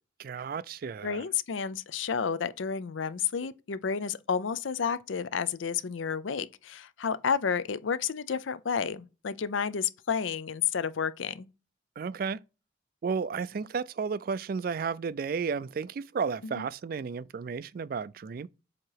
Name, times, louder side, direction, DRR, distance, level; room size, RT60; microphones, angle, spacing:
voice 1, 0.2-1.2 12.0-12.4 13.0-18.5, right 5 dB, 50° right, 0.3 m, -33 dB
voice 2, 1.0-11.5 16.4-16.7, left 6 dB, 80° left, 0.5 m, -31 dB
7.5 x 2.9 x 4.7 m
head